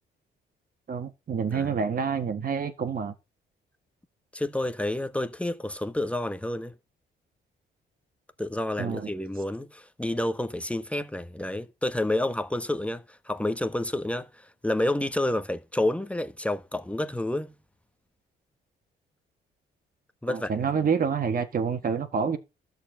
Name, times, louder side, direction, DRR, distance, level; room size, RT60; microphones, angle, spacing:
voice 1, 0.9-3.1 8.8-9.1 20.3-22.4, right 6 dB, 45° right, 1.6 m, -28 dB
voice 2, 4.3-6.7 8.4-17.5 20.2-20.5, left 1 dB, 5° left, 1.1 m, -29 dB
12.5 x 4.6 x 7.7 m
cardioid pair, 90°, 20 cm